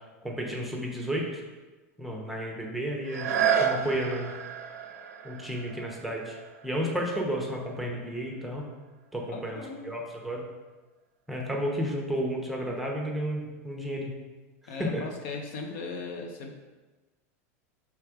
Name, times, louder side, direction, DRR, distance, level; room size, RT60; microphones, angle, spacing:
voice 1, 0.2-1.4 2.0-3.3 3.6-4.3 5.2-6.4 6.6-8.6 9.1-10.4 11.3-14.1 14.9-15.0, equal, ahead, -1 dB, 0.8 m, -32 dB
sound 1, 3.0-8.7 9.3-9.4, right 7 dB, 90° right, 0.5 m, -32 dB
voice 2, 9.3-9.9 14.7-16.5, left 3 dB, 60° left, 3 dB, 0.7 m, -38 dB
3.4 x 3.2 x 4.8 m, 1.2 s
supercardioid pair, 125°, 8 cm